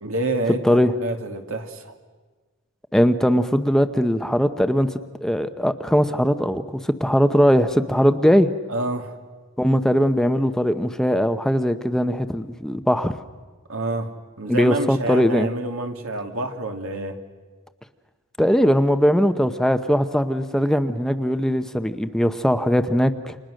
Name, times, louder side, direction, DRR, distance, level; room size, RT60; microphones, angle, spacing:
voice 1, 0.0-2.0 8.7-9.2 13.7-14.1 14.4-17.2, right 2 dB, 80° right, 4 dB, 2.5 m, -28 dB
voice 2, 2.9-8.5 9.6-13.2 14.5-15.5 18.4-23.4, equal, 5° left, 9 dB, 0.8 m, -20 dB
29.5 x 27.0 x 6.4 m, 1.4 s
head